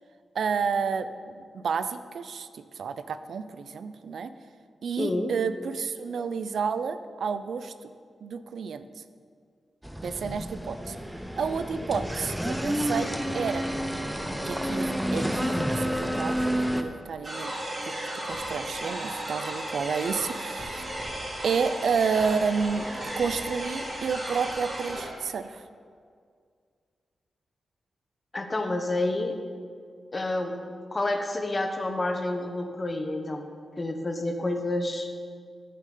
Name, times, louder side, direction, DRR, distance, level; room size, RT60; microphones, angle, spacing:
voice 1, 0.3-4.3 4.8-7.7 8.2-8.9 10.0-11.0 11.4-13.6 14.4-17.5 17.8-17.9 18.2-20.8 21.4-22.9 23.2-25.7, right 5 dB, 75° right, 12 dB, 0.4 m, -30 dB
voice 2, 5.0-5.3 28.3-29.4 30.1-30.6 30.9-33.4 33.8-35.1, left 2 dB, 30° left, 5 dB, 0.9 m, -29 dB
sound 1, 9.8-16.8, equal, 5° right, 0.5 m, -29 dB
sound 2, 17.2-25.1, right 1 dB, 35° right, 2.1 m, -34 dB
14.0 x 6.4 x 3.8 m, 2.1 s
wide cardioid pair, 120°, 0 cm